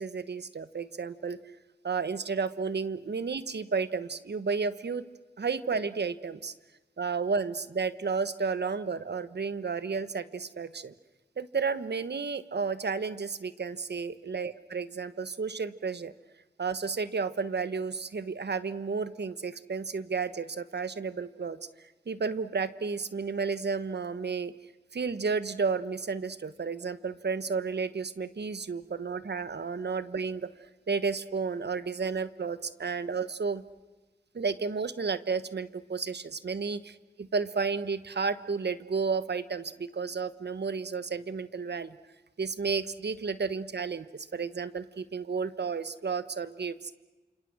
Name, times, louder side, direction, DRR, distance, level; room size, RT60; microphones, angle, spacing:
voice 1, 0.0-1.4 1.8-5.0 5.4-6.5 7.0-10.9 11.4-16.1 16.6-24.5 24.9-30.5 30.9-33.6 34.3-42.0 42.4-46.9, right 5 dB, 75° right, 13 dB, 1.2 m, -32 dB
28.5 x 27.5 x 6.2 m, 1.2 s
wide cardioid pair, 65°, 17 cm